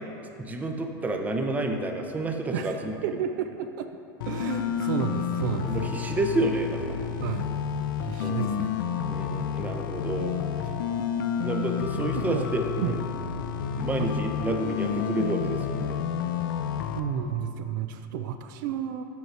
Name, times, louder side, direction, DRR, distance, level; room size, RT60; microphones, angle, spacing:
voice 1, 0.4-3.0 5.6-7.1 8.2-8.5 9.1-10.3 11.4-13.0 13.8-16.0, right 2 dB, 15° right, 3 dB, 0.5 m, -29 dB
voice 2, 2.5-4.0 4.2-6.0 7.2-7.6 8.0-8.9 11.9-12.5 12.8-13.0 14.0-14.1 16.9-19.0, right 8 dB, 70° right, 8 dB, 0.4 m, -32 dB
sound 1, 4.2-17.0, left 8 dB, 85° left, 0.4 m, -30 dB
5.2 x 4.9 x 4.5 m, 2.7 s
supercardioid pair, 115°, 11 cm